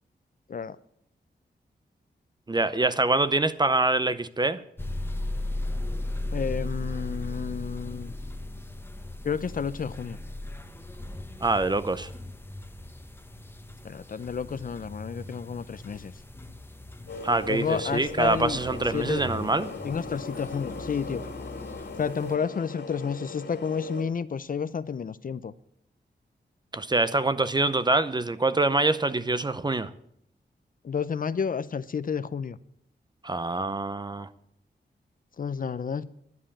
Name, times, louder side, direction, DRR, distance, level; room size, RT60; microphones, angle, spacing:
voice 1, 2.5-4.6 11.4-12.1 17.2-19.7 26.7-29.9 33.2-34.3, right 2 dB, 25° right, 0.7 m, -25 dB
sound 1, 4.8-22.4, left 1 dB, 10° left, 1.0 m, -37 dB
voice 2, 6.3-8.1 9.2-10.2 13.8-16.1 17.5-18.6 18.9-19.3 19.8-21.2 22.0-25.5 30.8-32.6 35.4-36.1, left 6 dB, 50° left, 0.6 m, -31 dB
sound 2, 17.1-24.0, left 3 dB, 75° left, 2.6 m, -39 dB
11.0 x 7.5 x 8.7 m
wide cardioid pair, 80°, 18 cm